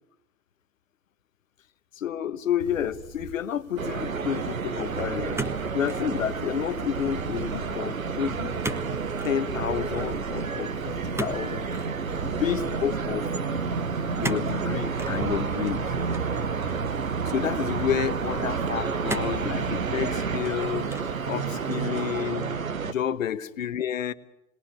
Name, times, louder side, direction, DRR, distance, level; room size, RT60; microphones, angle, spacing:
voice 1, 2.0-5.4 5.7-8.6 9.2-11.7 12.2-13.3 14.2-15.8 17.3-21.0 21.2-22.6 22.9-24.1, left 9 dB, 75° left, 14 dB, 1.2 m, -30 dB
sound 1, 2.6-21.9, right 3 dB, 65° right, 5.0 m, -41 dB
sound 2, 3.8-22.9, right 5 dB, 85° right, 1.1 m, -30 dB
sound 3, 5.3-6.1 6.5-6.9 8.6-8.9 9.2-9.4 11.1-11.9 14.2-14.5 15.0-15.2 16.1-16.9 17.6-17.7 19.1-19.5 20.1-20.5 20.9-21.2, right 1 dB, 5° right, 1.8 m, -35 dB
29.5 x 21.0 x 8.5 m, 0.88 s
figure-of-eight pair, 80°, 40 cm